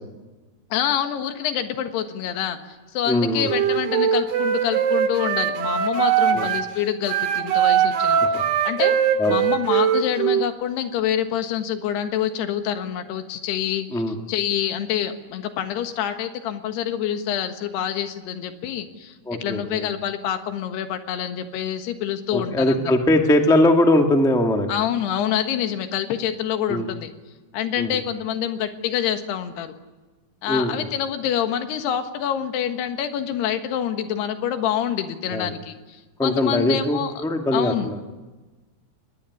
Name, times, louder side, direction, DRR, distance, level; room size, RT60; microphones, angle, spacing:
voice 1, 0.7-2.6 2.9-8.9 9.3-14.0 14.3-22.9 24.7-27.1 27.5-29.7 30.4-37.1 37.5-37.9, left 9 dB, 90° left, 7 dB, 3.6 m, -26 dB
voice 2, 3.1-3.5 6.3-6.4 8.3-8.4 9.2-9.4 13.9-14.1 19.2-19.9 22.3-24.7 26.7-26.9 27.8-28.0 30.5-30.9 35.3-35.5 36.2-38.0, left 1 dB, 5° left, 3 dB, 0.3 m, -21 dB
Wind instrument woodwind instrument, 3.4-6.7 7.0-10.5, right 8 dB, 80° right, 3.9 m, -21 dB
22.5 x 19.5 x 9.8 m, 1.2 s
omnidirectional pair, 4.5 m